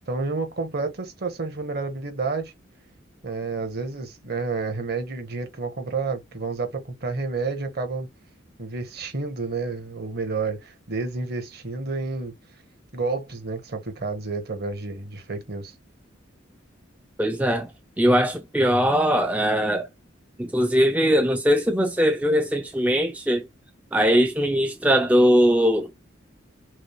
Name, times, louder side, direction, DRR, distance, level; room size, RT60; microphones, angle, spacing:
voice 1, 0.1-2.5 3.2-8.1 8.6-12.3 12.9-15.7, right 3 dB, 55° right, 1.2 m, -30 dB
voice 2, 17.2-17.7 18.0-19.9 20.4-23.5 23.9-25.9, equal, 5° right, 0.4 m, -20 dB
6.2 x 2.1 x 3.0 m
head